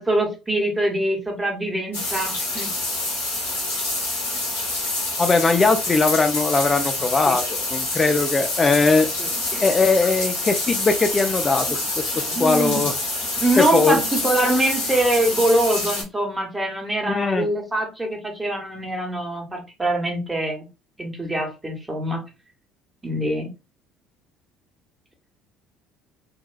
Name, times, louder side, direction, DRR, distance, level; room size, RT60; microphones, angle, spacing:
voice 1, 0.0-2.7 7.3-7.4 9.2-9.6 11.7-11.8 12.1-12.8 13.3-20.7 21.0-22.2 23.0-23.5, right 1 dB, 15° right, 2 dB, 1.2 m, -24 dB
sound 1, 1.9-16.0, left 2 dB, 90° left, 1.2 m, -27 dB
voice 2, 5.2-9.1 9.6-11.7 12.0-12.9 13.6-14.0 17.0-17.5, left 4 dB, 30° left, 6 dB, 0.3 m, -20 dB
3.1 x 2.3 x 2.2 m, 0.29 s
hypercardioid pair, 60°, 0 cm